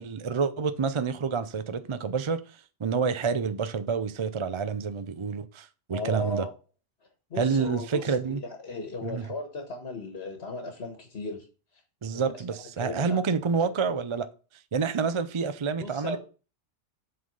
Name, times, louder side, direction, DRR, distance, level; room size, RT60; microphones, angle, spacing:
voice 1, 0.0-2.4 2.8-6.5 7.4-8.4 9.0-9.2 12.0-14.3 14.7-16.2, right 5 dB, 45° right, 0.4 m, -28 dB
voice 2, 5.9-6.5 7.3-11.4 12.1-13.2 13.6-13.7 15.8-16.2, left 2 dB, 60° left, 1.5 m, -36 dB
7.6 x 4.1 x 5.3 m
omnidirectional pair, 1.2 m